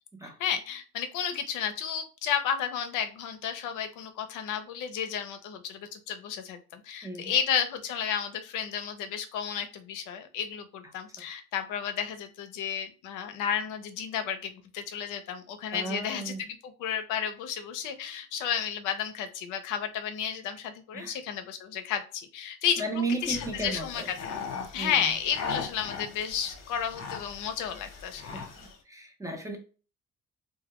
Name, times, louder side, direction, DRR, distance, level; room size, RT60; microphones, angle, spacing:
voice 1, 0.4-22.8 23.2-24.4 24.7-28.4, left 8 dB, 90° left, 8 dB, 0.5 m, -32 dB
voice 2, 15.7-16.4 20.9-21.2 22.8-24.1 24.8-25.1 28.3-29.6, right 2 dB, 10° right, 4 dB, 0.6 m, -34 dB
sound 1, 23.2-28.8, left 5 dB, 60° left, 0.7 m, -39 dB
2.2 x 2.1 x 2.9 m, 0.37 s
cardioid pair, 90°, 30 cm